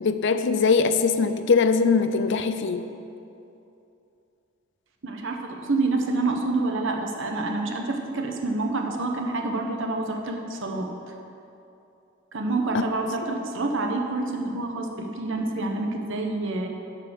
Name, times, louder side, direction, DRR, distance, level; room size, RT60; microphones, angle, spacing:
voice 1, 0.0-2.8 12.7-12.8, left 5 dB, 60° left, 10 dB, 0.5 m, -21 dB
voice 2, 5.0-11.2 12.3-16.7, right 2 dB, 65° right, 2 dB, 1.0 m, -27 dB
10.5 x 4.8 x 6.7 m, 2.7 s
head